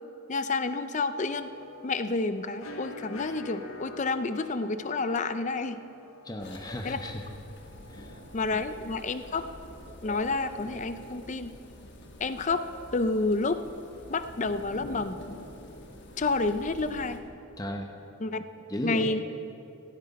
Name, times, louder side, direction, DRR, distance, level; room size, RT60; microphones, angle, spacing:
voice 1, 0.3-1.5 1.8-5.8 6.8-7.0 8.3-9.5 10.0-11.5 12.2-12.7 12.9-13.6 14.1-15.2 16.2-17.2 18.2-18.4 18.8-19.2, left 3 dB, 35° left, 11 dB, 0.5 m, -29 dB
sound 1, 1.2-8.5, left 3 dB, 75° left, 1.3 m, -46 dB
voice 2, 6.2-7.3 7.9-8.2 17.6-17.9 18.7-19.1, left 1 dB, 15° left, 3 dB, 0.9 m, -35 dB
sound 2, 6.4-17.2, left 1 dB, 50° left, 1.5 m, -46 dB
16.0 x 16.0 x 4.3 m, 2.7 s
head